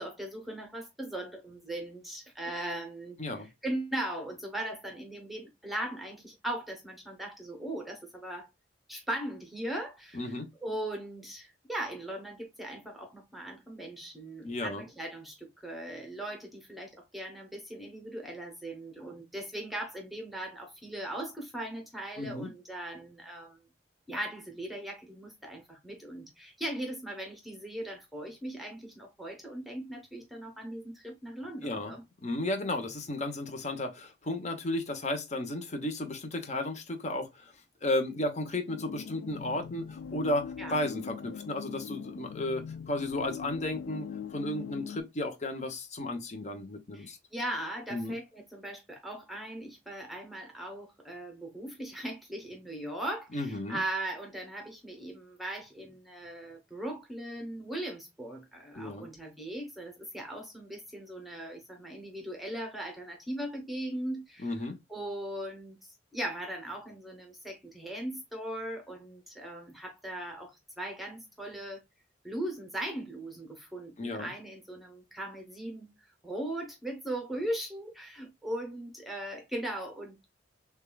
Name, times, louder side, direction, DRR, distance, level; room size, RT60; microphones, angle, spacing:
voice 1, 0.0-8.5 8.9-10.3 10.6-23.6 24.1-32.0 40.6-40.7 46.9-64.6 64.9-71.8 72.2-80.2, right 1 dB, ahead, 0.8 m, -39 dB
voice 2, 10.1-10.5 14.4-14.8 22.2-22.5 31.6-31.9 32.2-37.5 37.8-47.2 47.9-48.1 53.3-53.8 58.7-59.1 64.4-64.8 74.0-74.3, left 1 dB, 40° left, 0.8 m, -34 dB
sound 1, 38.7-45.0, left 7 dB, 75° left, 0.3 m, -41 dB
6.5 x 2.3 x 2.2 m
head